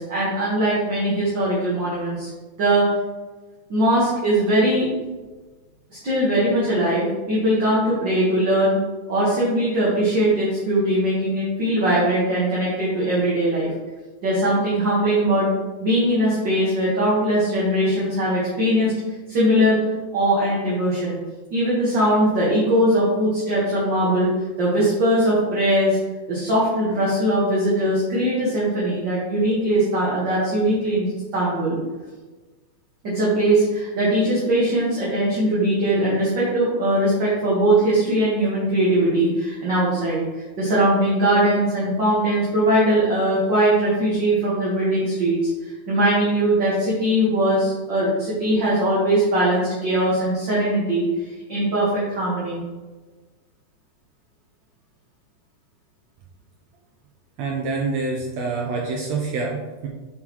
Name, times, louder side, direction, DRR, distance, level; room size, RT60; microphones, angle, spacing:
voice 1, 0.0-2.3 2.6-2.9 3.7-4.9 5.9-8.8 9.1-13.7 14.2-18.9 19.3-19.8 20.1-21.2 21.5-24.3 24.6-26.0 26.3-31.8 33.0-52.6, right 1 dB, 45° right, -7 dB, 1.7 m, -20 dB
voice 2, 57.4-59.9, right 3 dB, 75° right, 0 dB, 1.8 m, -26 dB
7.7 x 6.1 x 3.0 m, 1.3 s
omnidirectional pair, 3.6 m